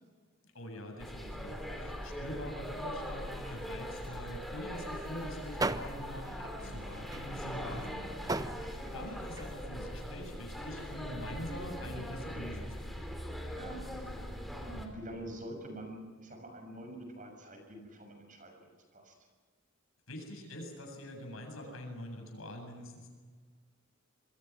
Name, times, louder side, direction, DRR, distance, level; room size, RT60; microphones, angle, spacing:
voice 1, 0.5-13.2 20.1-23.1, left 1 dB, 80° left, 3 dB, 7.9 m, -44 dB
sound 1, 1.0-14.9, equal, ahead, 3.6 m, -41 dB
sound 2, 4.8-9.6, right 2 dB, 15° right, 0.7 m, -39 dB
voice 2, 13.5-14.1 14.6-19.2, right 1 dB, 40° right, 4 dB, 6.7 m, -46 dB
27.5 x 22.5 x 6.1 m, 1.5 s
head